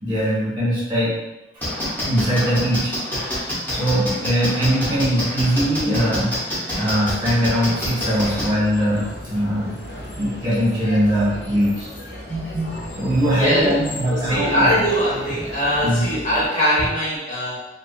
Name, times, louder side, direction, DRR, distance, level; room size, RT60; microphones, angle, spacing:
voice 1, 0.0-1.1 2.1-2.9 3.7-9.7 10.2-11.9 12.3-12.7 13.0-14.8 15.8-16.0, equal, 25° right, -9 dB, 0.9 m, -21 dB
sound 1, 1.6-8.5, equal, 10° left, 0.7 m, -26 dB
sound 2, 7.8-16.5, left 1 dB, 85° left, 0.7 m, -35 dB
voice 2, 13.3-13.7 14.1-17.7, equal, 40° left, -8 dB, 1.0 m, -21 dB
2.5 x 2.4 x 2.5 m, 0.98 s
head